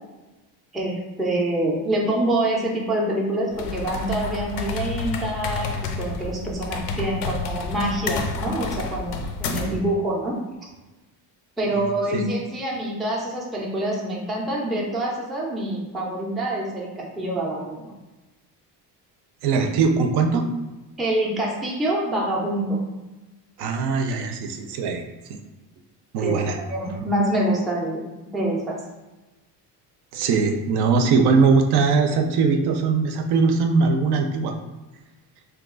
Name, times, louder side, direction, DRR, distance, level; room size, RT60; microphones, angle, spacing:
voice 1, 0.7-10.4 11.6-17.9 21.0-22.8 26.2-26.4 26.7-28.8, right 1 dB, ahead, -4 dB, 0.3 m, -26 dB
sound 1, 3.5-9.8, left 4 dB, 85° left, 0.5 m, -30 dB
voice 2, 9.5-9.8 12.1-12.2 19.4-20.5 23.6-25.0 25.3-25.4 26.1-26.6 26.9-27.1 30.1-34.5, right 4 dB, 65° right, 5 dB, 0.5 m, -21 dB
2.8 x 2.3 x 3.7 m, 1.1 s
cardioid pair, 150°, 42 cm